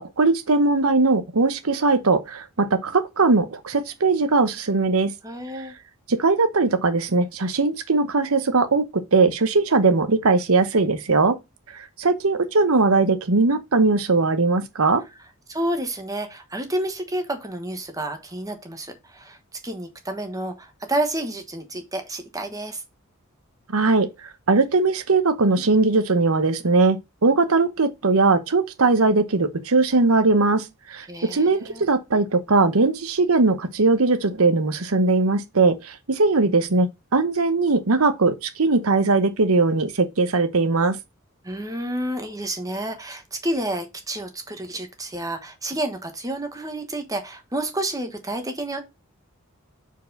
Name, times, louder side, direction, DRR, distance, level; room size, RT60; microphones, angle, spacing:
voice 1, 0.0-5.1 6.1-11.4 11.7-15.0 23.7-41.0, right 3 dB, 80° right, 0.9 m, -20 dB
voice 2, 5.2-5.7 15.5-19.4 19.6-22.8 31.1-31.8 41.4-48.8, right 1 dB, 15° right, 1.2 m, -30 dB
4.7 x 4.6 x 5.3 m
head